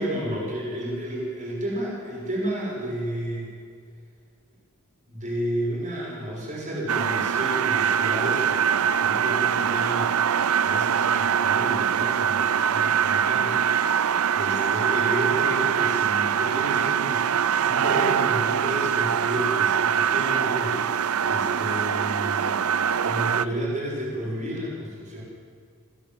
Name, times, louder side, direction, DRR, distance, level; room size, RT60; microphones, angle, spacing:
voice 1, 0.0-3.5 5.1-13.6 14.0-25.2, right 1 dB, 35° right, -4 dB, 6.5 m, -32 dB
sound 1, 6.9-23.4, right 8 dB, 70° right, 0.5 m, -23 dB
29.0 x 10.0 x 9.4 m, 2.2 s
head